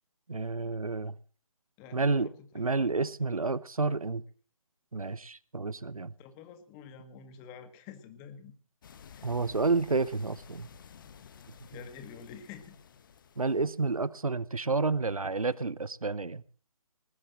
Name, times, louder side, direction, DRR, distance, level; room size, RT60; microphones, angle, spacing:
voice 1, 0.3-1.1 1.9-2.3 2.5-4.2 4.9-6.1 9.2-10.7 13.4-16.4, right 3 dB, 85° right, 21 dB, 0.8 m, -30 dB
voice 2, 1.8-2.7 3.2-3.3 5.1-5.2 6.2-8.5 9.1-9.3 11.7-12.8, left 7 dB, 15° left, 10 dB, 1.4 m, -48 dB
sound 1, 8.8-14.1, left 7 dB, 35° left, 1.1 m, -53 dB
19.5 x 8.4 x 7.5 m, 0.43 s
figure-of-eight pair, 145°, 18 cm